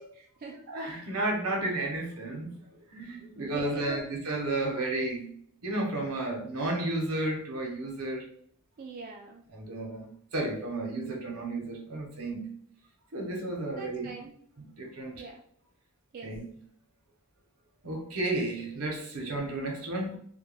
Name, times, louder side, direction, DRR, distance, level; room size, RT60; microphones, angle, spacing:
voice 1, 0.0-0.6 3.4-4.1 8.8-9.4 13.7-14.3 15.2-15.4 16.1-16.3 19.3-19.5, right 3 dB, 40° right, 0 dB, 0.3 m, -43 dB
voice 2, 0.7-2.5 2.9-5.3 5.6-8.2 9.5-12.5 13.1-14.1 14.6-15.2 16.2-16.4 17.8-20.2, right 2 dB, 80° right, 1 dB, 0.8 m, -32 dB
2.2 x 2.2 x 3.2 m, 0.62 s
head